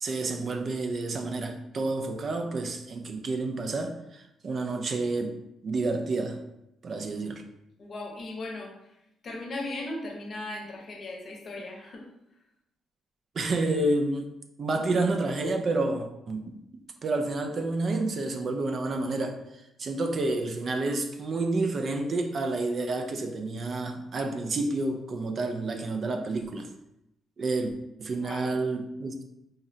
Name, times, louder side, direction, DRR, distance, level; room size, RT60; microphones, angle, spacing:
voice 1, 0.0-5.3 5.6-6.4 6.8-7.4 13.3-14.3 14.6-16.6 17.0-26.7 27.4-27.7 28.0-29.2, right 2 dB, 50° right, 5 dB, 0.4 m, -29 dB
voice 2, 7.8-9.0 9.2-12.1 28.1-28.6, left 2 dB, 50° left, 0 dB, 0.7 m, -38 dB
3.8 x 2.0 x 2.7 m, 0.84 s
cardioid pair, 90°, 0 cm